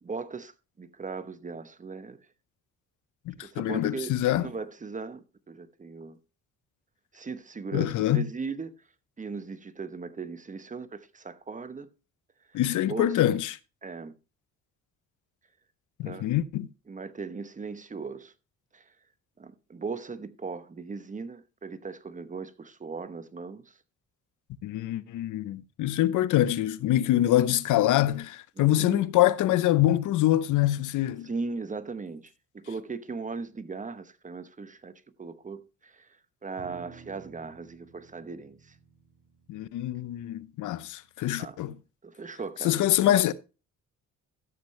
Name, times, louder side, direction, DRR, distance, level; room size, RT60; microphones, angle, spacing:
voice 1, 0.0-2.2 3.4-4.1 4.4-6.2 7.1-8.7 9.2-11.9 12.5-12.6 12.9-13.2 13.8-14.1 16.0-16.3 16.9-18.3 18.7-18.9 19.4-23.8 28.6-29.0 31.2-34.9 35.2-36.1 36.4-38.8 41.4-41.6 42.0-42.8, right 4 dB, 25° right, 0.9 m, -38 dB
voice 2, 3.3-4.5 7.7-8.2 12.5-13.6 16.0-16.7 24.6-31.3 39.5-41.8 42.6-43.3, left 13 dB, 80° left, 0.7 m, -25 dB
sound 1, 36.6-41.1, right 6 dB, 90° right, 2.8 m, -53 dB
13.5 x 7.5 x 3.2 m
cardioid pair, 90°, 30 cm